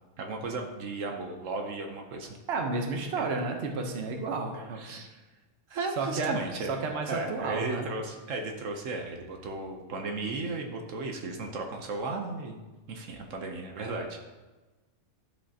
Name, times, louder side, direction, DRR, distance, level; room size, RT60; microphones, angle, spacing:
voice 1, 0.2-2.4 3.2-3.3 4.5-5.2 5.7-6.7 7.1-12.6 12.9-14.2, right 3 dB, 75° right, 3 dB, 1.2 m, -35 dB
voice 2, 2.5-4.8 6.0-7.9, right 3 dB, 55° right, 3 dB, 1.1 m, -32 dB
12.0 x 5.4 x 2.8 m, 1.2 s
omnidirectional pair, 1.3 m